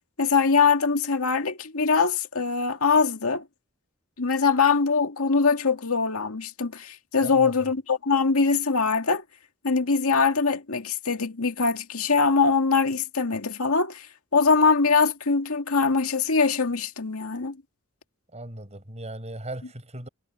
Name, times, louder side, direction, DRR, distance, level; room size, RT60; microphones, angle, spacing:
voice 1, 0.2-3.4 4.2-9.2 9.6-14.1 14.3-17.6, left 4 dB, 85° left, 2.1 m, -22 dB
voice 2, 7.2-7.5 18.3-20.1, right 1 dB, 30° right, 7.1 m, -38 dB
head